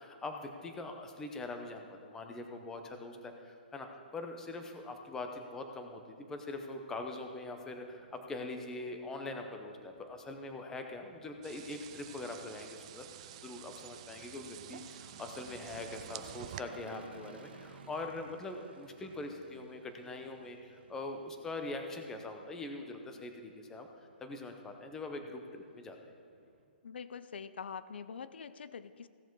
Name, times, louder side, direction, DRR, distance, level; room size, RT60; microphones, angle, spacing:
voice 1, 0.0-3.9 4.1-23.9 24.2-26.1, left 2 dB, 10° left, 4 dB, 0.7 m, -43 dB
sound 1, 7.3-26.6, right 5 dB, 75° right, 1.3 m, -57 dB
sound 2, 11.4-16.6, right 12 dB, 35° right, 0.4 m, -49 dB
voice 2, 26.8-29.1, left 6 dB, 80° left, 14 dB, 0.5 m, -44 dB
16.0 x 6.9 x 4.6 m, 2.5 s
hypercardioid pair, 165°, 6 cm